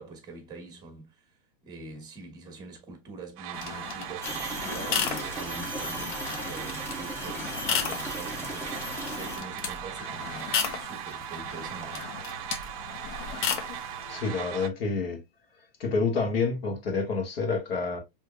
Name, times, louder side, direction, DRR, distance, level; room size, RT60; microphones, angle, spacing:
voice 1, 0.0-1.4 1.6-12.1, right 3 dB, 15° right, 1.1 m, -44 dB
sound 1, 3.4-14.7, right 11 dB, 40° right, 0.5 m, -39 dB
sound 2, 3.5-14.2, left 7 dB, 55° left, 0.8 m, -35 dB
sound 3, 4.2-9.4, equal, 10° left, 0.5 m, -37 dB
voice 2, 14.1-15.2 15.8-18.0, left 4 dB, 85° left, 1.6 m, -28 dB
4.9 x 3.1 x 2.3 m
supercardioid pair, 155°, 29 cm